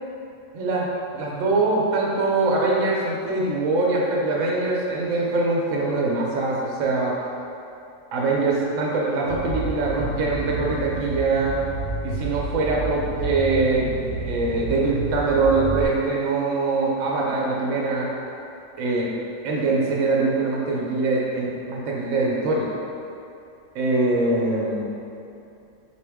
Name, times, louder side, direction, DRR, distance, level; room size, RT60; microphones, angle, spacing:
voice 1, 0.5-7.2 8.1-11.6 12.0-18.1 18.8-19.1 19.4-22.7 23.7-24.8, right 3 dB, 70° right, -3 dB, 0.9 m, -23 dB
sound 1, 9.3-15.8, right 2 dB, 55° left, 0.9 m, -30 dB
3.7 x 2.7 x 3.4 m, 2.7 s
omnidirectional pair, 1.4 m